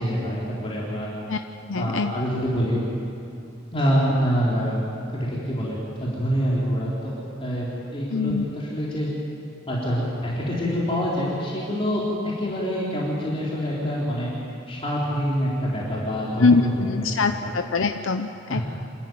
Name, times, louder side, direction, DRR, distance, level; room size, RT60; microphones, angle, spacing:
voice 1, 0.0-1.1 1.8-2.8 3.7-4.7 5.1-7.1 7.4-7.7 7.9-9.1 9.7-14.3 14.7-17.1 17.4-17.5 18.5-18.6, equal, 30° left, -6 dB, 3.8 m, -26 dB
voice 2, 1.7-2.1 8.1-8.5 16.4-18.6, left 4 dB, 80° left, 7 dB, 0.7 m, -23 dB
27.0 x 13.5 x 9.4 m, 2.7 s
head